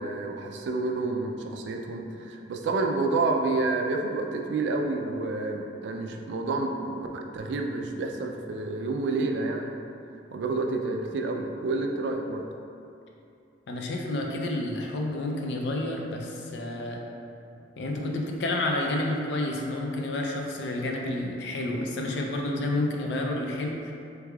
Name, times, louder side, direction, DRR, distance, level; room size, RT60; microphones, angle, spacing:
voice 1, 0.0-9.7 10.3-12.4, right 3 dB, 85° right, 3 dB, 0.3 m, -29 dB
voice 2, 13.7-17.0 17.8-23.9, left 1 dB, 75° left, 0 dB, 0.4 m, -30 dB
3.4 x 3.2 x 2.3 m, 2.6 s
head